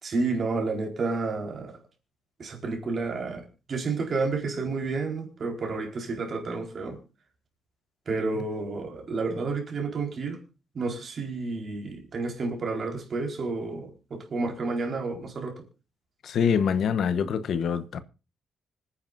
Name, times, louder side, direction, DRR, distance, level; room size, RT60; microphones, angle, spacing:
voice 1, 0.0-1.8 2.4-7.0 8.1-10.4 10.7-15.6, right 3 dB, 45° right, 4.2 m, -30 dB
voice 2, 16.2-18.0, left 7 dB, 65° left, 1.0 m, -25 dB
25.5 x 9.8 x 2.6 m
cardioid pair, 125°, 0 cm